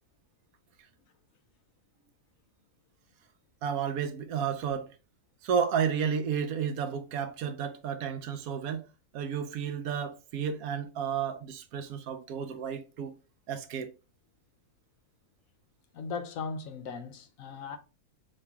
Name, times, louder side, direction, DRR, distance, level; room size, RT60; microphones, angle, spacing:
voice 1, 3.6-4.9 5.4-8.9 9.1-13.1 13.5-13.9, right 7 dB, 75° right, 1.0 m, -32 dB
voice 2, 15.9-17.8, left 5 dB, 70° left, 1.0 m, -38 dB
4.3 x 2.9 x 3.5 m
omnidirectional pair, 1.6 m